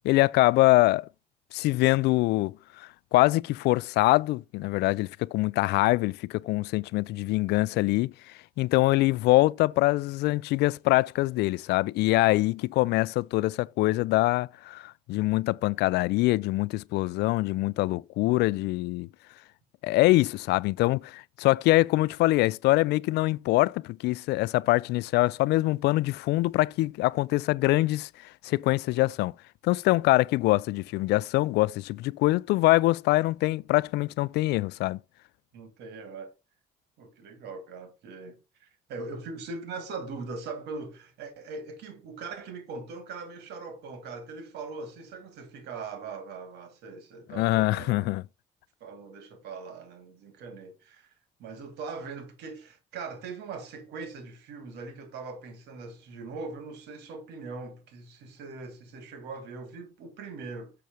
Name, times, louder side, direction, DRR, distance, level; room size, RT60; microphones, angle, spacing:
voice 1, 0.0-1.1 1.5-8.1 8.6-19.1 19.8-28.1 28.4-29.3 29.6-35.0 47.3-48.2, left 19 dB, 80° left, 0.4 m, -24 dB
voice 2, 35.5-36.3 37.0-48.1 48.8-51.1 51.4-60.7, right 4 dB, 80° right, 2.6 m, -41 dB
6.8 x 6.3 x 4.5 m
cardioid pair, 110°, 17 cm